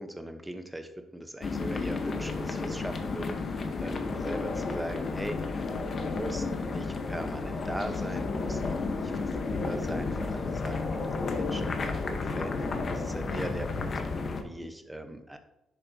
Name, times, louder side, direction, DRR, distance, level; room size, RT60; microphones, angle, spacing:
voice 1, 0.0-5.4 6.0-13.9 14.4-15.4, right 1 dB, 5° right, 7 dB, 1.0 m, -40 dB
sound 1, 1.4-14.4, left 3 dB, 45° left, 1.1 m, -32 dB
10.5 x 7.1 x 2.8 m, 0.89 s
cardioid pair, 90°, 0 cm